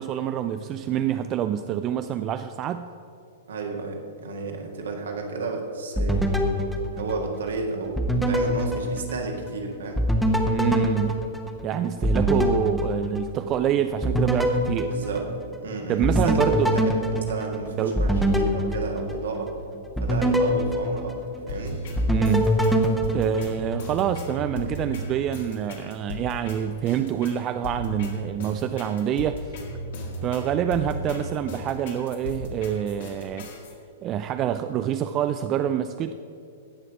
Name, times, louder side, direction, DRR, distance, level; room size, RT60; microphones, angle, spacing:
voice 1, 0.0-2.9 10.5-11.2 11.6-14.9 15.9-16.8 17.8-18.0 22.1-22.6 23.1-29.5 30.2-33.5 34.0-36.1, right 10 dB, 30° right, 10 dB, 0.3 m, -26 dB
voice 2, 3.5-6.3 6.9-10.0 14.9-15.3 15.6-16.7 17.3-19.5 20.0-21.8, right 3 dB, 65° right, 2 dB, 1.7 m, -32 dB
sound 1, 6.0-7.6 8.0-9.6 10.0-13.6 14.0-15.6 16.0-19.5 20.0-21.6 22.0-23.9, equal, ahead, 1.1 m, -24 dB
sound 2, 21.5-33.7, left 1 dB, 55° left, 1.8 m, -36 dB
16.5 x 5.9 x 4.9 m, 2.6 s
figure-of-eight pair, 105°, 0 cm